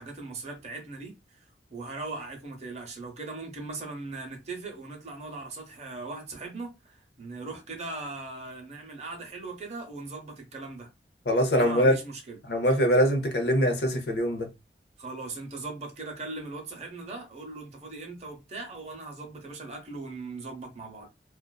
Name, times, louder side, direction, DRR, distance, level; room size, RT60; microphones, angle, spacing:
voice 1, 0.0-1.4 1.7-10.9 11.6-12.4 15.0-21.1, right 3 dB, 40° right, 0.7 m, -39 dB
voice 2, 11.3-12.0 12.5-14.5, equal, 65° left, 0.6 m, -23 dB
2.4 x 2.3 x 2.2 m
head